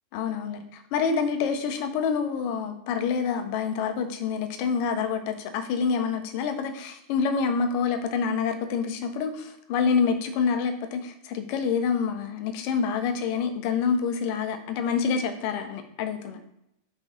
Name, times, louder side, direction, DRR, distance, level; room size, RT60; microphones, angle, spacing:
voice 1, 0.1-16.4, left 6 dB, 45° left, 7 dB, 1.2 m, -27 dB
6.3 x 4.0 x 5.4 m, 0.83 s
figure-of-eight pair, 90°, 0 cm